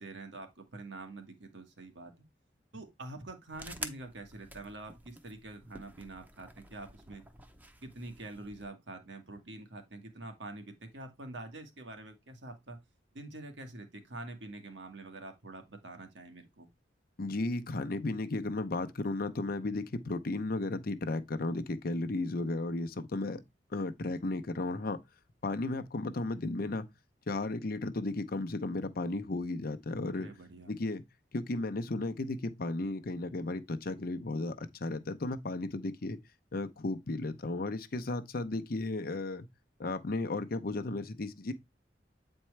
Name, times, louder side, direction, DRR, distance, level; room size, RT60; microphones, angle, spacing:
voice 1, 0.0-2.2 2.7-7.2 7.8-12.8 13.1-16.7 30.1-30.8, right 2 dB, 75° right, 1.6 m, -46 dB
sound 1, 3.5-8.7, right 1 dB, 10° right, 0.7 m, -48 dB
voice 2, 17.2-23.4 23.7-25.0 25.4-26.9 27.3-30.3 30.7-31.0 31.3-36.2 36.5-39.5 39.8-41.5, left 2 dB, 55° left, 0.7 m, -34 dB
8.3 x 4.4 x 3.2 m
head